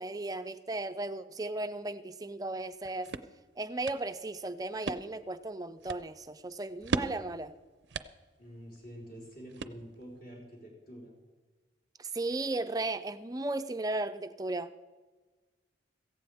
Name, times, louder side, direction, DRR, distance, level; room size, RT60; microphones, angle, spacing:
voice 1, 0.0-3.1 3.6-7.5 12.0-14.7, right 2 dB, 20° right, 0.5 m, -35 dB
sound 1, 2.6-10.2, right 4 dB, 65° right, 0.5 m, -40 dB
voice 2, 8.4-11.2, equal, 55° left, 4.3 m, -47 dB
17.0 x 15.0 x 3.5 m
head